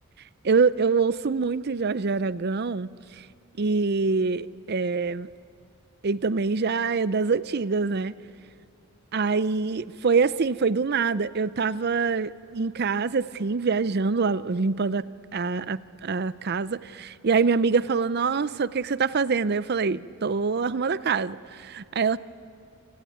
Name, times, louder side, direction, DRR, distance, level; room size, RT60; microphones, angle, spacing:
voice 1, 0.4-2.9 3.6-5.3 6.0-8.2 9.1-15.1 15.3-22.2, right 4 dB, 50° right, 0.6 m, -25 dB
27.5 x 18.0 x 9.3 m
head